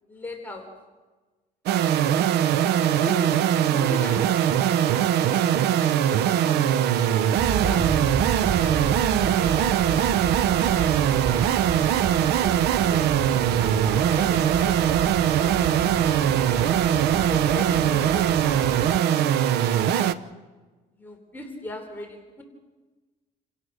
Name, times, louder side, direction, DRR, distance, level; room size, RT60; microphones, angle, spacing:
voice 1, 0.1-0.8 2.0-2.3 2.8-4.8 5.1-7.1 7.5-9.0 9.4-10.1 10.4-11.3 12.2-13.3 13.7-15.0 15.4-15.7 16.0-19.4 19.8-20.2 20.9-22.4, left 1 dB, 10° left, 1 dB, 3.6 m, -40 dB
sound 1, 1.7-20.1, right 10 dB, 80° right, 0.9 m, -21 dB
Aircraft, 7.4-19.0, right 5 dB, 25° right, 0.7 m, -31 dB
29.0 x 17.0 x 6.5 m, 1.3 s
cardioid pair, 110°, 17 cm